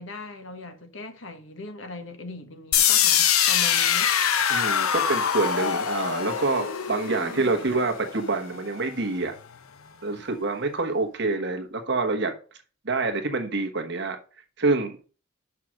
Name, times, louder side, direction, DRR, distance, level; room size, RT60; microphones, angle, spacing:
voice 1, 0.0-4.1, left 2 dB, 60° left, 1.3 m, -39 dB
sound 1, 2.7-8.7, left 9 dB, 85° left, 0.7 m, -24 dB
voice 2, 4.5-9.3 10.0-12.3 12.8-14.2 14.6-15.0, right 3 dB, 55° right, 1.3 m, -26 dB
6.0 x 5.8 x 6.3 m
head